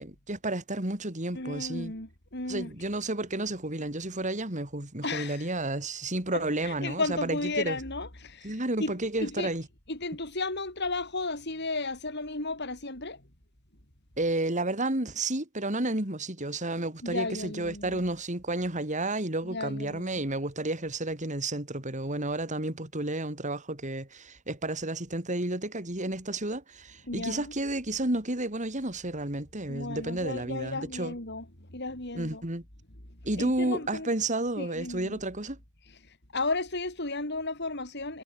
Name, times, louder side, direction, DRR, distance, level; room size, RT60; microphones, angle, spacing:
voice 1, 0.0-1.9 2.5-7.8 8.4-9.6 14.2-31.1 32.1-32.6 33.2-35.6, right 2 dB, 35° right, 3.9 m, -31 dB
voice 2, 1.3-2.7 5.0-5.5 6.3-9.5 9.9-13.2 17.0-18.0 19.4-20.2 27.0-27.5 29.7-32.4 33.1-34.1 34.6-35.2 36.0-38.2, left 3 dB, 55° left, 6.6 m, -34 dB
head